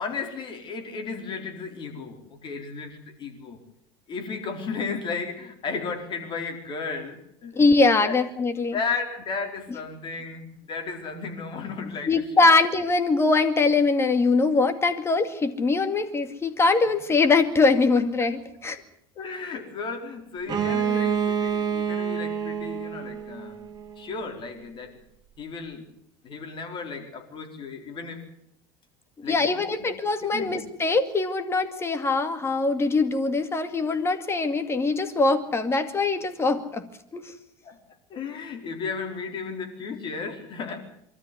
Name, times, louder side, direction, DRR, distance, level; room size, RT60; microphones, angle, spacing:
voice 1, 0.0-3.7 4.1-7.6 8.0-8.2 8.7-12.6 19.1-23.6 24.0-25.0 25.4-25.9 26.2-28.2 29.2-29.8 30.2-30.6 37.6-37.8 38.1-40.9, left 4 dB, 40° left, 4 dB, 4.6 m, -34 dB
voice 2, 7.6-8.8 12.1-18.8 29.2-37.3, left 3 dB, 20° left, 8 dB, 2.3 m, -22 dB
Bowed string instrument, 20.5-24.1, right 7 dB, 30° right, 3.5 m, -28 dB
24.0 x 13.5 x 9.7 m, 0.71 s
supercardioid pair, 120°, 13 cm